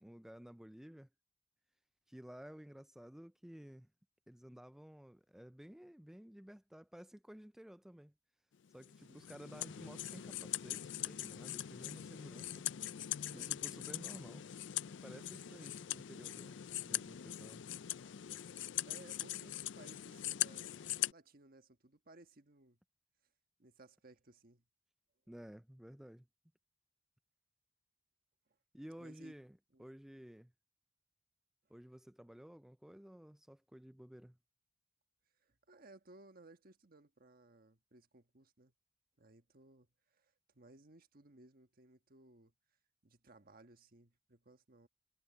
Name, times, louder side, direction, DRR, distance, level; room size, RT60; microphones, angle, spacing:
voice 1, 0.0-1.1 2.1-3.9 4.3-8.1 8.7-12.7 13.3-14.4 15.0-17.6 25.3-26.3 28.7-30.5 31.7-34.4, equal, ahead, 0.3 m, -54 dB
sound 1, 8.8-21.1, left 13 dB, 85° left, 0.4 m, -42 dB
voice 2, 18.6-22.8 23.6-24.7 29.0-29.3 29.7-29.9 35.4-38.7 39.2-42.5 43.0-44.9, right 2 dB, 55° right, 1.4 m, -61 dB
head